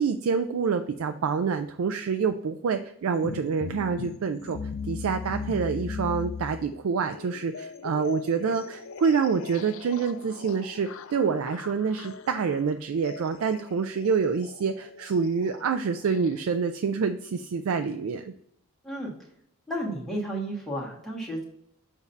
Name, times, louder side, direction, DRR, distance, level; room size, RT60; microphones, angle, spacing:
voice 1, 0.0-4.6 4.9-18.3, right 5 dB, 70° right, 7 dB, 0.3 m, -27 dB
sound 1, 3.1-16.4, left 5 dB, 65° left, 0.4 m, -39 dB
voice 2, 19.7-21.4, right 1 dB, ahead, -4 dB, 1.3 m, -32 dB
7.1 x 2.7 x 5.3 m, 0.70 s
head